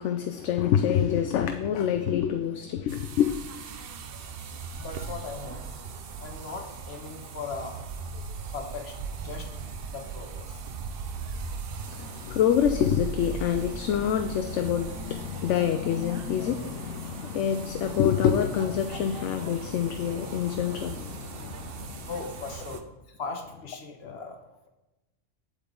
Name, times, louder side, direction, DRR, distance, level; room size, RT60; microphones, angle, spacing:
voice 1, 0.0-3.3 11.8-22.1, left 9 dB, 70° left, 0.9 m, -26 dB
sound 1, 2.9-22.8, right 5 dB, 55° right, 0.8 m, -39 dB
voice 2, 4.8-5.8 6.2-7.8 8.5-9.5 9.9-10.6 22.1-22.8 23.2-24.4, left 4 dB, 55° left, 1.4 m, -38 dB
8.2 x 7.7 x 3.8 m
omnidirectional pair, 1.4 m